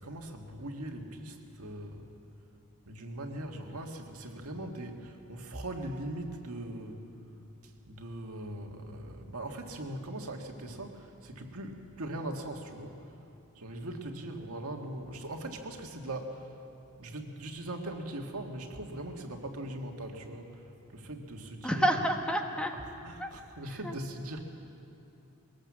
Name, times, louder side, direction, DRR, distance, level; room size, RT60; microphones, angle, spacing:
voice 1, 0.0-2.1 2.9-7.0 7.9-13.0 13.6-16.5 17.0-20.6 20.9-21.8 23.0-24.4, right 1 dB, 80° right, 3 dB, 1.9 m, -40 dB
voice 2, 21.6-22.7 23.2-23.3 23.8-23.9, equal, 5° left, 3 dB, 1.1 m, -28 dB
22.0 x 18.5 x 7.5 m, 2.8 s
head